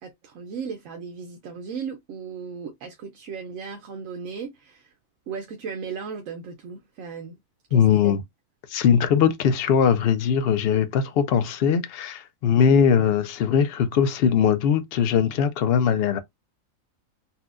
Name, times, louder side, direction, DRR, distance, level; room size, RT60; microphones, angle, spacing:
voice 1, 0.0-4.9 5.3-7.4 7.7-8.2, right 6 dB, 75° right, 1.0 m, -36 dB
voice 2, 7.7-8.2 8.7-16.2, left 7 dB, 60° left, 0.7 m, -20 dB
4.1 x 2.2 x 2.4 m
omnidirectional pair, 1.4 m